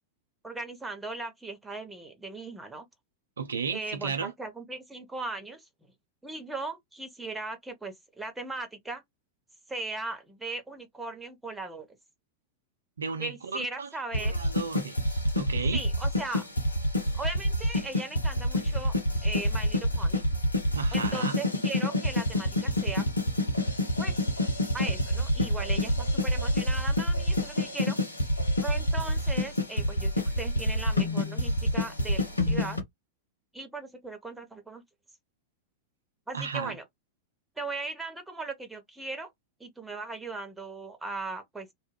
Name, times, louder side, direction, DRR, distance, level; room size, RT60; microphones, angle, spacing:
voice 1, 0.4-2.9 3.7-5.9 6.2-9.0 9.7-11.9 13.2-14.4 15.7-16.5 17.1-18.9 19.2-20.2 20.9-23.0 24.0-24.1 24.7-28.0 28.6-32.8 33.5-34.8 36.3-36.8 37.6-39.3 39.6-41.7, right 3 dB, 5° right, 0.8 m, -38 dB
voice 2, 3.4-4.3 13.0-13.9 14.2-15.8 20.7-21.4 36.3-36.8, right 5 dB, 70° right, 0.3 m, -34 dB
sound 1, 14.1-32.8, left 1 dB, 80° left, 0.6 m, -27 dB
2.2 x 2.0 x 3.2 m
figure-of-eight pair, 90°, 0 cm